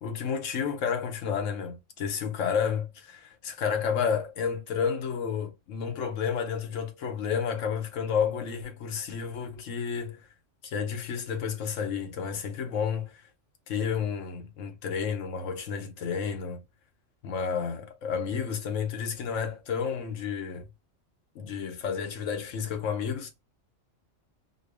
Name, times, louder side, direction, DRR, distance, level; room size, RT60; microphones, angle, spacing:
voice 1, 0.0-10.2 10.6-13.2 13.7-16.6 17.2-20.7 21.3-23.3, left 6 dB, 80° left, 1.2 m, -31 dB
4.3 x 2.1 x 3.3 m
omnidirectional pair, 1.3 m